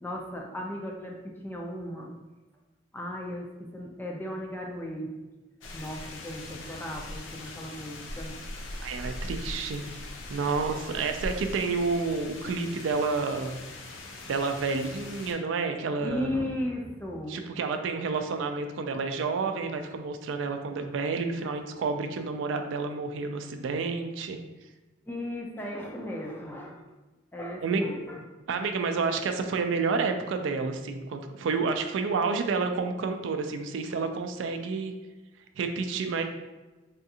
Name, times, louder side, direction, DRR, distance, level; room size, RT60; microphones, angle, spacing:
voice 1, 0.0-2.1 2.9-5.1 5.6-8.4 16.0-17.4 21.4-21.5 25.1-26.8 27.3-28.2, left 1 dB, 10° left, 0 dB, 0.4 m, -36 dB
sound 1, 5.6-15.3, left 2 dB, 90° left, 0.5 m, -40 dB
voice 2, 8.8-9.8 10.3-13.6 14.3-16.3 17.3-24.4 27.6-27.9 28.5-34.9 35.6-36.2, right 4 dB, 80° right, 6 dB, 0.3 m, -29 dB
3.5 x 2.4 x 2.7 m, 1.1 s
head